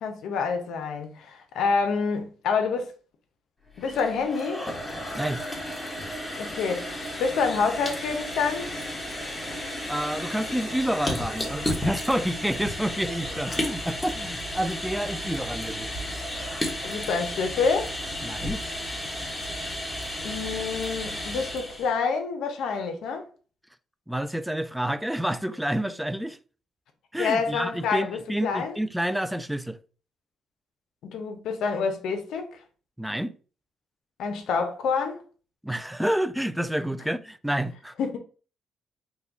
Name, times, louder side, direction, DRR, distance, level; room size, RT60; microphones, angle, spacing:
voice 1, 0.0-2.9 3.8-4.7 6.4-8.7 16.8-17.9 20.2-23.3 27.2-28.8 31.0-32.6 34.2-35.2 38.0-38.2, left 5 dB, 80° left, 0.8 m, -27 dB
sound 1, 3.7-21.9, left 1 dB, 15° left, 1.3 m, -33 dB
voice 2, 9.9-15.9 18.2-18.6 24.1-26.4 27.1-29.8 33.0-33.3 35.6-37.9, right 1 dB, 5° right, 0.3 m, -29 dB
4.2 x 2.3 x 3.6 m
cardioid pair, 90°, 0 cm